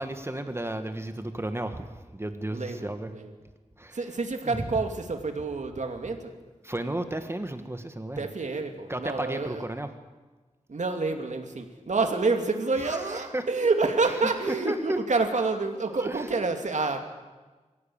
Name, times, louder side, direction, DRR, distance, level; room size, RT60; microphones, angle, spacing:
voice 1, 0.0-3.1 3.8-4.0 4.4-4.7 6.6-8.3 8.9-9.9 12.8-13.5 14.2-15.0 15.9-16.3, right 1 dB, 20° right, 8 dB, 1.5 m, -33 dB
voice 2, 2.5-3.3 3.9-6.3 8.2-9.6 10.7-17.0, right 3 dB, 80° right, 5 dB, 2.6 m, -28 dB
23.5 x 16.0 x 8.7 m, 1.3 s
wide cardioid pair, 90°, 12 cm